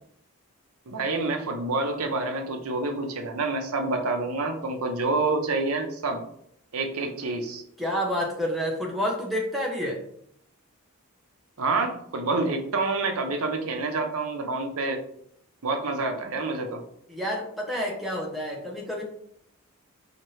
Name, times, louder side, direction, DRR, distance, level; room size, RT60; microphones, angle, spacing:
voice 1, 0.9-6.2 6.7-7.6 11.6-15.0 15.6-16.8, right 3 dB, 75° right, 5 dB, 0.6 m, -27 dB
voice 2, 7.8-10.0 17.1-19.0, equal, ahead, -2 dB, 0.7 m, -29 dB
4.2 x 2.8 x 3.1 m, 0.71 s
head